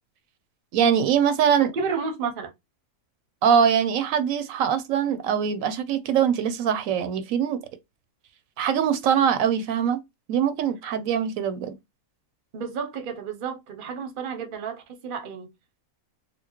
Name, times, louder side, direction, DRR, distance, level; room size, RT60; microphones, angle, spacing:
voice 1, 0.7-1.7 3.4-7.6 8.6-10.0 10.3-11.7, right 8 dB, 80° right, 1.0 m, -22 dB
voice 2, 1.6-2.5 12.5-15.5, right 5 dB, 50° right, 0.8 m, -31 dB
4.3 x 2.1 x 2.9 m
omnidirectional pair, 1.4 m